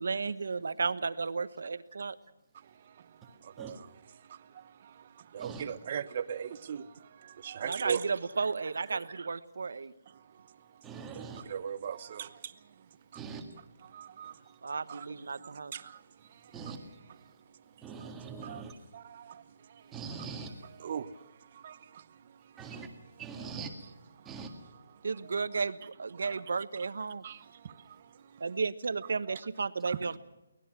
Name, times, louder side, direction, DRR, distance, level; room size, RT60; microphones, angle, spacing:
voice 1, 0.0-2.2 7.6-9.9 14.6-15.7 25.0-27.2 28.4-30.2, right 4 dB, 70° right, 1.2 m, -33 dB
voice 2, 2.5-8.1 8.9-9.0 10.1-13.0 13.8-16.6 17.2-18.1 18.4-19.9 20.4-22.7 23.4-23.6 24.2-24.3 24.9-25.6 26.1-26.4 27.2-28.4 29.3-29.4 29.8-30.0, right 8 dB, 35° right, 0.9 m, -42 dB
voice 3, 10.8-11.5 13.1-13.5 16.5-16.9 17.8-18.7 19.9-20.5 22.6-22.9 23.2-23.7 24.3-24.5, right 5 dB, 10° right, 1.8 m, -42 dB
24.0 x 19.0 x 6.0 m
hypercardioid pair, 170°, 0 cm